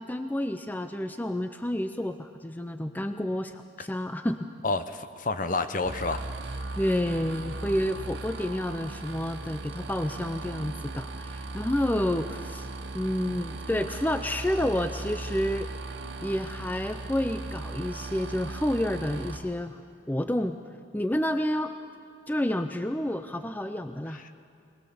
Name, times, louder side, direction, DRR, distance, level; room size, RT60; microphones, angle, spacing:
voice 1, 0.0-4.5 6.8-12.7 12.9-15.7 16.2-19.8 20.1-20.6 20.9-21.7 22.3-24.2, left 1 dB, 10° left, 9 dB, 0.4 m, -29 dB
voice 2, 4.6-6.5 24.1-24.3, left 3 dB, 45° left, 10 dB, 0.8 m, -30 dB
sound 1, 5.8-19.4, right 3 dB, 85° right, 1.6 m, -38 dB
21.0 x 20.5 x 7.0 m, 2.4 s
head